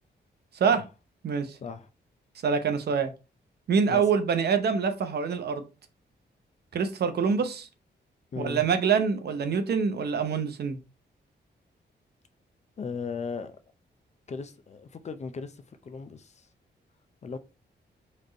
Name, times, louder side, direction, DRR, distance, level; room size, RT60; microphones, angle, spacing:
voice 1, 0.5-0.8 1.2-1.6 2.4-3.1 3.7-5.7 6.7-7.7 8.4-10.8, right 6 dB, 60° right, 0.8 m, -25 dB
voice 2, 8.3-8.7 12.8-13.6 14.3-15.6 15.8-16.3 17.2-17.4, left 5 dB, 40° left, 0.5 m, -36 dB
4.2 x 3.2 x 3.9 m
wide cardioid pair, 150°, 18 cm